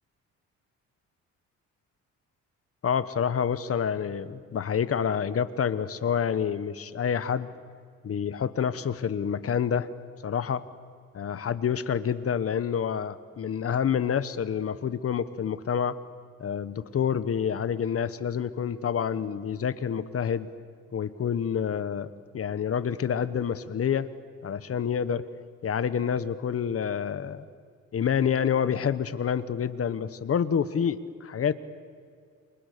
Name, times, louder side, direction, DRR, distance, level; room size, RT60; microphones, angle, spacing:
voice 1, 2.8-7.5 8.0-9.9 10.2-10.6 11.1-16.0 16.4-20.5 20.9-24.1 24.4-25.3 25.6-27.5 27.9-31.5, left 7 dB, 50° left, 14 dB, 1.3 m, -28 dB
29.0 x 28.0 x 6.9 m, 2.1 s
cardioid pair, 90°, 30 cm